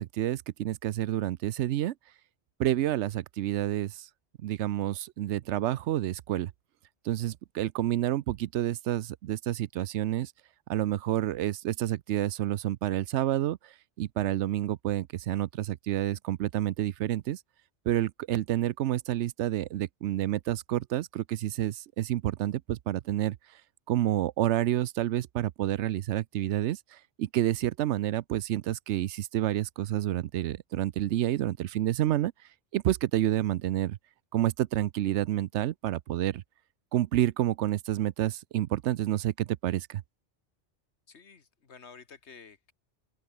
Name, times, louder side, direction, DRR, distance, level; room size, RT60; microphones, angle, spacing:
voice 1, 0.0-1.9 2.6-4.1 4.4-6.5 7.1-10.3 10.7-13.6 14.0-17.4 17.9-23.4 23.9-26.8 27.2-32.3 32.7-34.0 34.3-36.4 36.9-40.0, right 13 dB, 80° right, 0.9 m, -29 dB
voice 2, 41.1-42.7, left 5 dB, 75° left, 1.8 m, -51 dB
open air
omnidirectional pair, 1.2 m